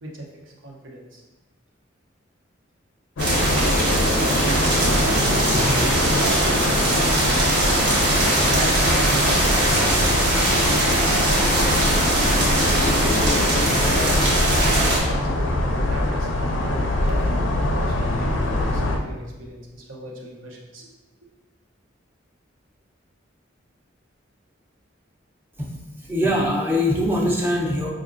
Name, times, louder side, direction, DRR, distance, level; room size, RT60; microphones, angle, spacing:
voice 1, 0.0-1.2 4.4-7.7 8.5-10.0 10.6-12.9 13.8-20.9, right 1 dB, 85° right, -1 dB, 0.7 m, -36 dB
sound 1, 3.2-19.0, left 1 dB, 80° left, 0.4 m, -23 dB
sound 2, 3.2-15.0, right 1 dB, 65° right, 1.0 m, -21 dB
voice 2, 26.1-27.9, left 1 dB, 10° right, -2 dB, 0.5 m, -22 dB
4.7 x 2.4 x 2.5 m, 1.1 s
head